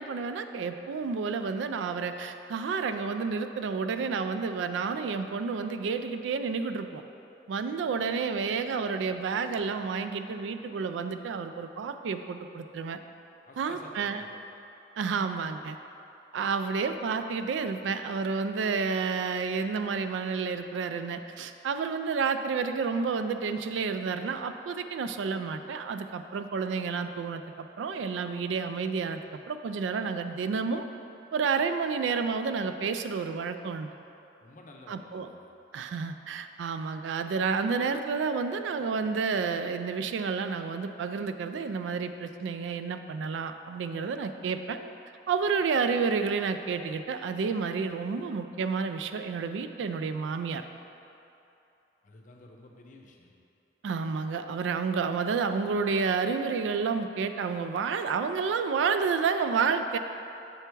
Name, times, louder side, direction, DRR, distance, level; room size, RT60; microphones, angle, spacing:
voice 1, 0.0-7.0 7.5-13.0 13.6-14.2 15.0-15.8 16.3-30.8 31.3-33.9 34.9-35.3 35.7-44.8 45.3-50.6 53.8-60.0, right 5 dB, 85° right, 9 dB, 0.3 m, -30 dB
voice 2, 13.5-14.4 34.4-35.5 52.0-53.3, left 2 dB, 45° left, 1 dB, 0.6 m, -51 dB
7.0 x 3.4 x 4.5 m, 2.8 s
head